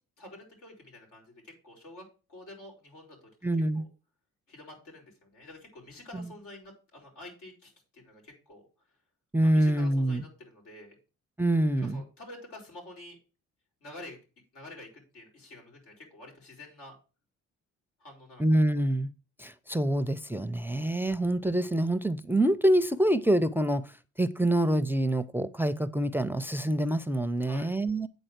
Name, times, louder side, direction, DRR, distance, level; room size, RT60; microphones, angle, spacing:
voice 1, 0.2-3.3 3.7-3.9 4.5-8.6 9.4-11.0 11.8-13.2 13.8-14.2 14.5-16.9 18.0-18.4 27.4-27.7, left 1 dB, 90° left, 4.4 m, -48 dB
voice 2, 3.4-3.8 6.1-6.2 9.3-10.2 11.4-12.0 18.4-19.1 19.4-23.9 24.2-28.1, right 1 dB, 5° right, 0.4 m, -26 dB
9.0 x 4.0 x 6.4 m
cardioid pair, 90°, 30 cm